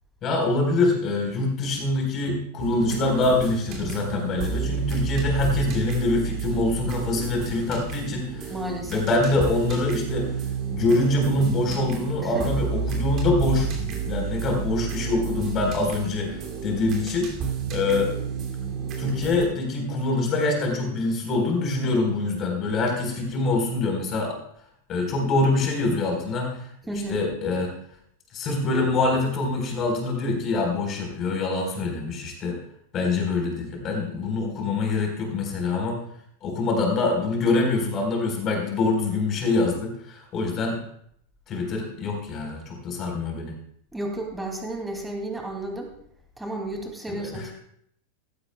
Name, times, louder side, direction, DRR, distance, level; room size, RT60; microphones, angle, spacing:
voice 1, 0.2-8.5 8.9-10.3 10.7-17.3 17.7-18.1 19.0-24.4 24.9-26.7 27.1-27.7 28.3-32.6 32.9-36.0 36.4-40.8 41.5-43.5 47.1-47.4, left 2 dB, 30° left, 2 dB, 4.4 m, -25 dB
sound 1, 2.6-19.4, right 6 dB, 35° right, 2.7 m, -30 dB
voice 2, 8.5-9.1 12.2-12.7 26.9-27.2 43.9-45.9 46.4-47.5, right 1 dB, 5° right, 2 dB, 2.7 m, -32 dB
16.0 x 13.5 x 2.3 m, 0.69 s
figure-of-eight pair, 90°, 0 cm